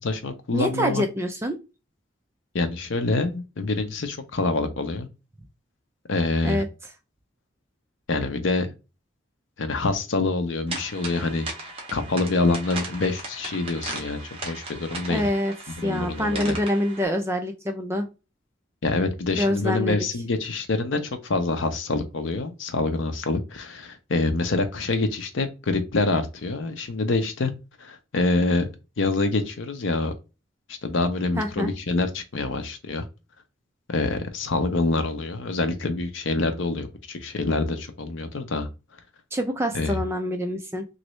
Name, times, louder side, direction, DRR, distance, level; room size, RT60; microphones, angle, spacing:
voice 1, 0.0-1.0 2.5-5.1 6.1-6.6 8.1-8.7 9.6-11.5 11.9-15.2 15.7-16.6 18.8-27.5 27.8-28.7 29.0-30.1 30.7-33.0 33.9-38.7 39.7-40.0, left 3 dB, 70° left, 0.6 m, -26 dB
voice 2, 0.5-1.6 6.4-6.7 15.1-18.1 19.4-20.1 31.4-31.7 39.3-40.8, equal, 15° right, 0.3 m, -26 dB
sound 1, 10.7-17.0, right 2 dB, 30° right, 0.9 m, -37 dB
3.1 x 2.6 x 3.0 m
head